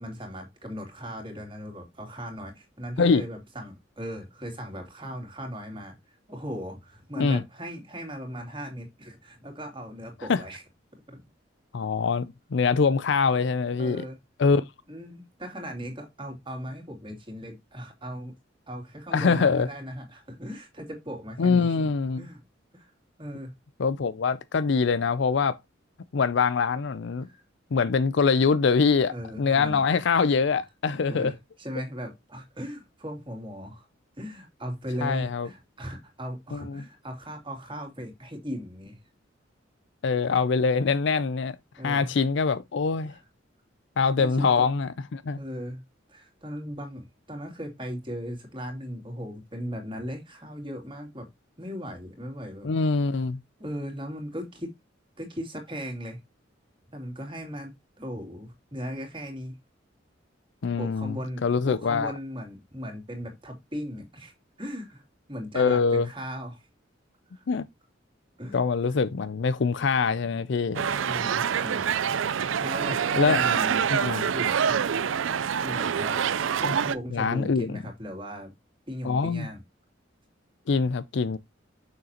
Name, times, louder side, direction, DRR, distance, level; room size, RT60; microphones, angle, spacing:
voice 1, 0.0-6.0 6.3-10.6 11.1-11.2 13.8-14.2 14.5-14.6 14.9-18.3 18.7-21.9 22.2-22.4 22.7-22.9 23.2-23.5 27.2-27.4 29.1-29.8 30.1-30.3 31.1-33.8 34.2-39.0 41.8-42.1 43.0-43.2 44.2-44.7 45.4-45.8 46.1-51.3 51.6-52.7 53.6-54.7 55.2-56.2 56.9-59.6 60.8-64.3 64.6-65.0 65.3-66.6 67.3-67.4 68.4-68.6 70.9-71.9 72.4-74.8 75.6-76.2 76.6-78.5 78.9-79.6, equal, 25° right, 2.7 m, -38 dB
voice 2, 11.7-14.0 14.4-14.6 19.1-19.7 21.4-22.2 23.8-25.6 26.1-27.3 27.7-31.3 35.0-35.5 36.5-36.8 40.0-41.6 41.8-43.1 44.0-45.4 52.6-53.4 60.6-61.2 61.4-62.1 65.5-66.1 67.5-67.6 68.5-70.9 73.1-73.4 73.9-74.2 76.6-76.7 77.1-77.8 79.0-79.5 80.7-81.4, left 5 dB, 65° left, 0.5 m, -24 dB
sound 1, 70.8-77.0, right 7 dB, 80° right, 0.5 m, -26 dB
6.6 x 6.5 x 2.9 m
head